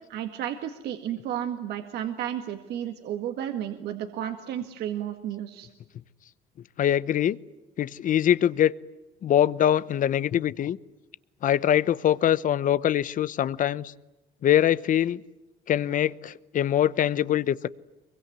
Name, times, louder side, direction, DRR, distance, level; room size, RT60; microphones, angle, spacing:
voice 1, 0.0-5.7, right 10 dB, 75° right, 6 dB, 1.9 m, -32 dB
voice 2, 6.8-7.4 7.8-8.7 9.2-10.8 11.4-13.9 14.4-15.2 15.7-17.7, left 10 dB, 50° left, 18 dB, 0.9 m, -23 dB
24.5 x 23.0 x 9.4 m, 1.0 s
cardioid pair, 110°, 17 cm